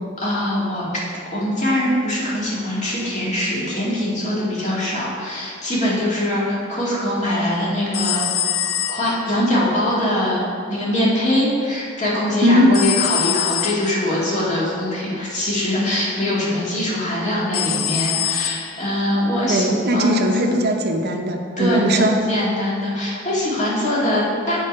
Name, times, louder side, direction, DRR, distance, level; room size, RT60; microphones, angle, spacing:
voice 1, 0.2-0.8 1.3-8.5 8.9-20.6 21.6-24.6, left 1 dB, 35° left, -6 dB, 1.9 m, -22 dB
sound 1, 7.9-9.5 12.7-14.0 17.5-18.9, left 11 dB, 70° left, 0.4 m, -24 dB
voice 2, 12.4-12.8 19.5-22.2, equal, 55° right, 2 dB, 0.7 m, -19 dB
7.6 x 4.7 x 5.2 m, 2.4 s
head